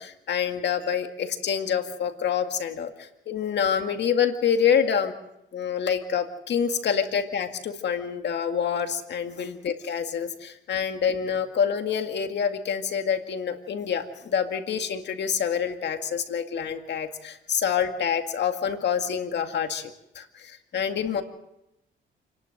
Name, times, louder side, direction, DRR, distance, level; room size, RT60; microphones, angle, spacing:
voice 1, 0.0-5.1 5.5-21.2, left 7 dB, 60° left, 6 dB, 2.1 m, -27 dB
29.0 x 11.5 x 7.8 m, 0.86 s
cardioid pair, 90°, 20 cm